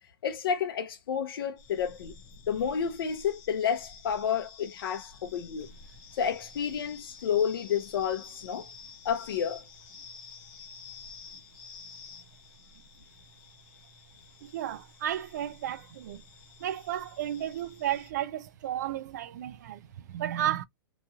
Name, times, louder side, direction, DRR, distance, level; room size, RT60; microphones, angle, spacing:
voice 1, 0.2-2.1 2.5-5.7 6.1-8.7 9.0-9.7, left 7 dB, 90° left, 0.6 m, -30 dB
sound 1, 1.6-18.1, left 5 dB, 30° left, 0.8 m, -50 dB
voice 2, 14.4-16.2 16.6-20.6, right 11 dB, 50° right, 0.4 m, -33 dB
2.9 x 2.4 x 2.7 m
supercardioid pair, 180°, 12 cm